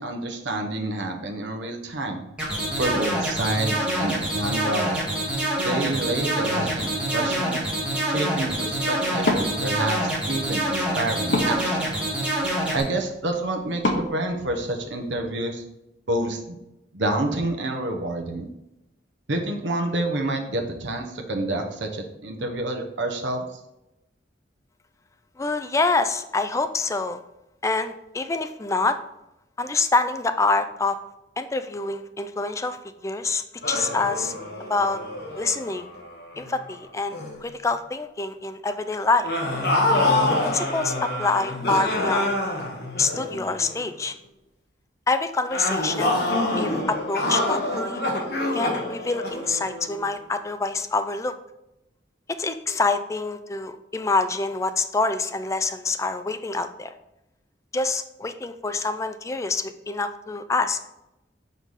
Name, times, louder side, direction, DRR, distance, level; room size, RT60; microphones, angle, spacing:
voice 1, 0.0-2.2 2.8-5.0 5.6-7.6 8.1-11.9 12.7-15.6 16.1-16.6 16.9-18.5 19.3-23.4, right 2 dB, 85° right, 3 dB, 0.9 m, -28 dB
sound 1, 2.4-12.8, right 1 dB, 5° right, 1.7 m, -26 dB
Wood, 9.2-15.2, left 1 dB, 80° left, 1.0 m, -31 dB
voice 2, 25.4-27.2 27.6-29.0 29.6-31.0 31.4-32.8 33.0-34.3 34.7-35.0 35.4-35.9 36.4-39.3 40.4-42.5 43.0-44.1 45.1-46.2 46.6-48.0 48.5-51.3 52.3-56.9 57.7-60.8, left 3 dB, 15° left, 9 dB, 0.3 m, -26 dB
sound 2, 33.6-36.7 37.1-37.4 39.2-43.8 45.5-50.1, left 2 dB, 60° left, 1.1 m, -26 dB
5.3 x 4.0 x 4.8 m, 0.90 s
head